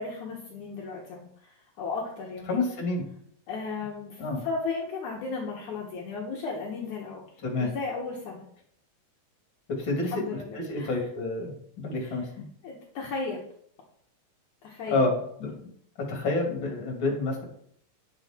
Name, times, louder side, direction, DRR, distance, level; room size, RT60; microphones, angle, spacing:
voice 1, 0.0-2.5 3.5-7.3 7.6-8.4 10.0-11.1 12.0-12.2 12.6-13.4 14.6-15.1, left 4 dB, 65° left, -2 dB, 2.6 m, -35 dB
voice 2, 2.5-3.0 4.2-4.4 7.4-7.7 9.7-10.1 10.5-12.5 14.9-15.7 16.0-17.4, left 2 dB, 35° left, 0 dB, 3.2 m, -29 dB
10.0 x 8.1 x 4.4 m, 0.66 s
omnidirectional pair, 4.0 m